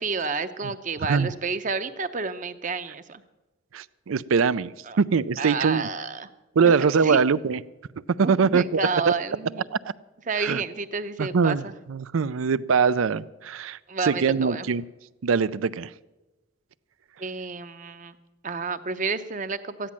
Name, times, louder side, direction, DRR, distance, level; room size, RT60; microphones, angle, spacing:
voice 1, 0.0-3.2 4.9-5.0 5.4-6.3 6.6-7.2 8.2-9.7 10.3-11.8 13.9-14.7 17.2-18.2 18.4-19.9, right 4 dB, 40° right, 10 dB, 0.7 m, -30 dB
voice 2, 3.7-5.8 6.6-7.6 8.2-8.8 9.1-9.2 9.7-9.8 10.4-10.6 11.2-11.6 11.9-13.8 14.0-14.8 15.2-15.9, right 5 dB, 85° right, 17 dB, 0.5 m, -22 dB
14.0 x 10.0 x 7.4 m, 1.1 s
head